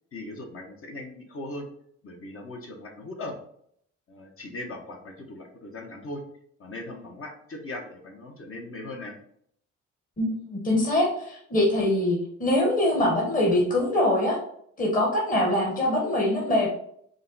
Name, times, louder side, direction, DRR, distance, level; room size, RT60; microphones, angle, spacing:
voice 1, 0.1-1.7 2.0-3.4 4.1-6.2 6.6-9.2, left 2 dB, 45° left, 2 dB, 1.1 m, -39 dB
voice 2, 10.2-14.4 14.8-16.7, left 1 dB, 25° left, -2 dB, 1.2 m, -23 dB
5.1 x 2.2 x 4.0 m, 0.67 s
cardioid pair, 90°, 30 cm